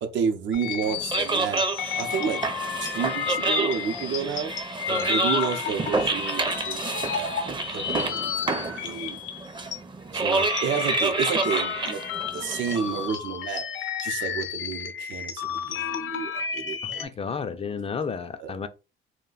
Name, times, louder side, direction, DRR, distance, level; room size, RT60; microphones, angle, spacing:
voice 1, 0.0-1.6 2.0-2.4 2.8-4.5 5.1-9.2 10.1-12.0 12.3-17.0 18.4-18.7, right 6 dB, 70° right, 0.6 m, -31 dB
sound 1, 0.5-9.8 10.1-17.1, left 8 dB, 75° left, 0.6 m, -32 dB
sound 2, 0.8-13.1, right 3 dB, 25° right, 0.5 m, -29 dB
voice 2, 16.8-18.7, left 6 dB, 30° left, 0.4 m, -32 dB
2.3 x 2.2 x 3.8 m
cardioid pair, 90°, 20 cm